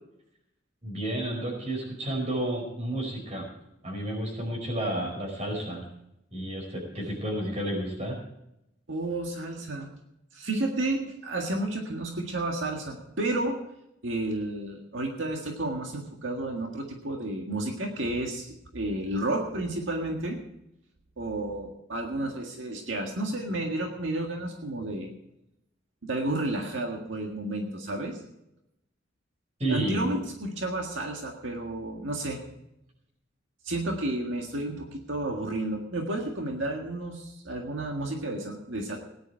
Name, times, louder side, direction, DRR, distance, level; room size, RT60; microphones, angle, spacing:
voice 1, 0.8-3.5 3.8-5.8 6.3-8.2 29.6-30.1, right 1 dB, 35° right, 1 dB, 4.7 m, -31 dB
voice 2, 8.9-9.9 10.3-13.5 14.0-20.4 21.2-25.1 26.0-28.2 29.7-32.4 33.6-39.0, right 2 dB, 85° right, 2 dB, 1.8 m, -31 dB
17.5 x 10.5 x 4.6 m, 0.83 s
head